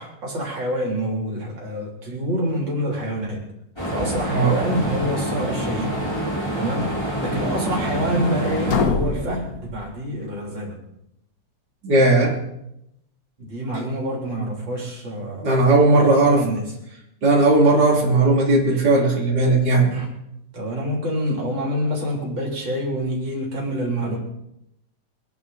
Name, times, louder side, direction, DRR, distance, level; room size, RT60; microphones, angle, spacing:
voice 1, 0.0-3.5 3.9-6.1 6.6-10.8 13.4-15.5 16.2-16.7 19.9-20.1 20.5-24.2, equal, 80° right, -1 dB, 4.2 m, -27 dB
sound 1, 3.8-8.8, equal, 15° left, 4.7 m, -26 dB
sound 2, 8.7-10.5, left 5 dB, 55° left, 1.6 m, -26 dB
voice 2, 11.8-12.4 15.4-16.5 17.2-20.0, right 2 dB, 60° right, -3 dB, 3.7 m, -17 dB
24.0 x 10.5 x 4.1 m, 0.80 s
omnidirectional pair, 2.0 m